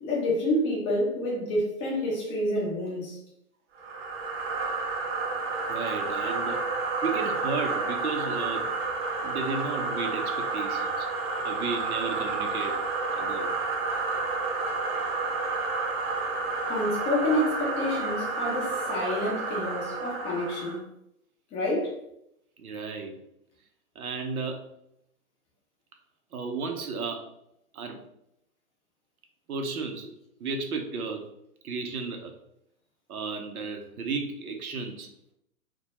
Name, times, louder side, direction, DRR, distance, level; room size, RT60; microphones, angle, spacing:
voice 1, 0.0-3.2 16.7-20.9 21.5-22.0, left 1 dB, 15° left, 0.4 m, -28 dB
sound 1, 3.8-20.8, right 3 dB, 45° right, 0.6 m, -30 dB
voice 2, 5.7-6.6 7.0-8.8 9.2-11.1 11.4-12.8 13.1-13.5 22.6-23.2 24.0-24.6 26.3-27.3 27.7-28.0 29.5-30.1 30.4-31.3 31.6-32.3 33.1-35.1, right 4 dB, 90° right, 0.6 m, -33 dB
2.2 x 2.1 x 2.8 m
hypercardioid pair, 125°, 43 cm